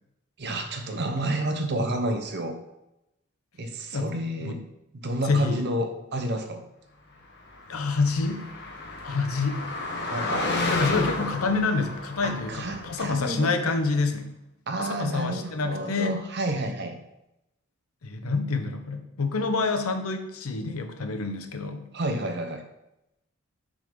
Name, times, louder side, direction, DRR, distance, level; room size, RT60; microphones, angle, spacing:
voice 1, 0.4-2.6 3.6-4.6 4.9-6.6 10.1-10.6 12.2-13.5 14.7-17.0 21.9-22.6, right 1 dB, 50° right, 6 dB, 0.8 m, -30 dB
voice 2, 3.9-4.6 5.2-5.6 7.7-8.4 9.0-9.6 10.7-14.3 14.8-16.2 18.0-21.9, left 4 dB, 80° left, 6 dB, 0.8 m, -27 dB
Car passing by, 7.5-13.5, left 2 dB, 50° left, 1.2 m, -32 dB
6.2 x 3.8 x 5.2 m, 0.88 s
head